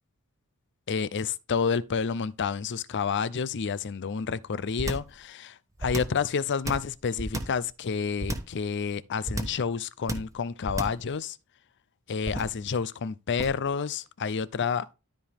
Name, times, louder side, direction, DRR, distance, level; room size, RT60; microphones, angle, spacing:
voice 1, 0.9-11.4 12.1-14.9, left 6 dB, 55° left, 0.5 m, -29 dB
sound 1, 4.8-5.2 5.8-6.2 6.6-7.6 8.2-8.6 9.3-9.7 10.1-10.4 10.7-11.1 12.2-12.6 13.4-13.7, right 1 dB, 15° right, 1.3 m, -32 dB
13.0 x 4.8 x 3.5 m
head